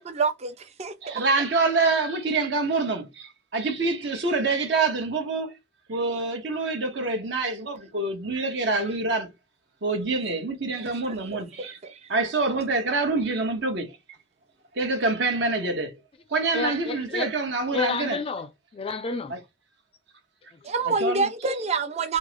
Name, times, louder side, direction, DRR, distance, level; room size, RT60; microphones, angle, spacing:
voice 1, 0.0-1.2 11.6-12.1 20.6-22.2, right 4 dB, 35° right, 0.5 m, -27 dB
voice 2, 1.0-5.5 5.9-9.3 9.8-11.8 12.1-14.0 14.7-16.0 16.3-18.2 19.3-19.4 20.9-21.3, right 3 dB, 70° right, 0.9 m, -26 dB
voice 3, 16.5-17.3 17.7-19.4, left 4 dB, 30° left, 0.4 m, -30 dB
3.5 x 2.0 x 3.1 m
head